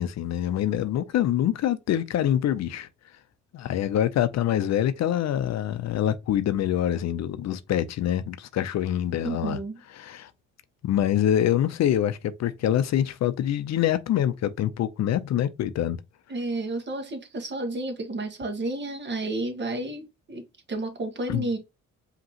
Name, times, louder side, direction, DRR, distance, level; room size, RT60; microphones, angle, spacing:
voice 1, 0.0-2.9 3.5-9.6 10.0-10.3 10.8-16.0 21.3-21.4, left 11 dB, 60° left, 0.5 m, -25 dB
voice 2, 9.2-9.8 16.3-20.4 20.7-21.6, right 2 dB, 35° right, 1.4 m, -31 dB
5.1 x 3.0 x 2.8 m
cardioid pair, 90°, 30 cm